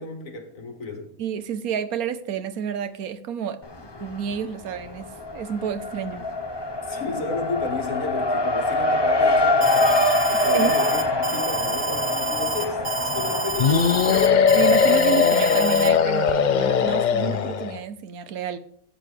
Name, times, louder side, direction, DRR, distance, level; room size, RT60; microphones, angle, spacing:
voice 1, 0.0-1.1 6.8-10.0 10.3-14.2, left 3 dB, 65° left, 2.0 m, -33 dB
voice 2, 1.2-3.6 4.0-5.1 5.3-6.2 10.5-10.7 14.5-18.6, right 8 dB, 85° right, 1.3 m, -29 dB
Race car auto racing, 3.6-4.4 4.7-16.0, left 2 dB, 25° left, 0.7 m, -25 dB
Alarm, 9.6-15.9, right 4 dB, 35° right, 1.3 m, -29 dB
sound 1, 13.6-17.8, left 7 dB, 90° left, 0.4 m, -19 dB
13.0 x 8.8 x 3.3 m
omnidirectional pair, 1.5 m